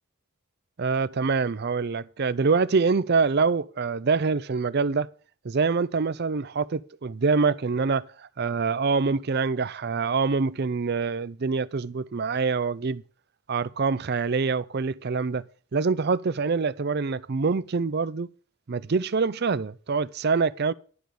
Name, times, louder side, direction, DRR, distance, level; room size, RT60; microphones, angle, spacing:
voice 1, 0.8-5.1 5.4-13.0 13.5-15.4 15.7-18.3 18.7-20.7, right 4 dB, 45° right, 0.5 m, -25 dB
11.5 x 5.0 x 7.5 m
head